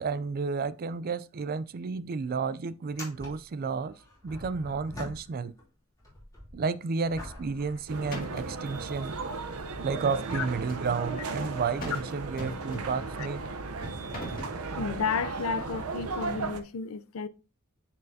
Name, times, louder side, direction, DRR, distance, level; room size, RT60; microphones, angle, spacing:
voice 1, 0.0-4.0 4.2-5.6 6.5-9.2 9.8-13.4, right 4 dB, 45° right, 0.4 m, -32 dB
sound 1, 1.6-1.7 1.9-2.0 2.8-5.7 6.0-8.7 9.4-9.5 13.6-13.7 15.1-15.2, left 1 dB, 15° left, 2.9 m, -45 dB
sound 2, 7.4-7.8 8.1-8.6 10.1-11.1 11.8-12.1 12.4-13.1 13.8-14.6, right 1 dB, 45° left, 2.0 m, -40 dB
sound 3, 7.9-16.6, right 3 dB, 85° right, 0.7 m, -36 dB
voice 2, 14.8-17.3, left 5 dB, 70° left, 0.5 m, -32 dB
9.4 x 4.5 x 2.7 m
head